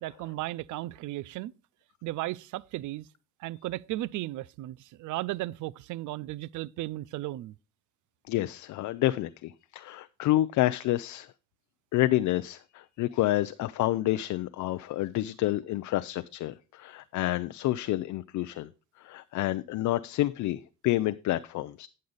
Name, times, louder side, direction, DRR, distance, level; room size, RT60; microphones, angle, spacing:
voice 1, 0.0-1.5 2.0-3.1 3.4-7.5, right 16 dB, 75° right, 0.4 m, -35 dB
voice 2, 8.3-11.3 11.9-18.7 19.0-21.9, left 15 dB, 75° left, 0.5 m, -29 dB
9.5 x 6.5 x 3.9 m
cardioid pair, 90°, 30 cm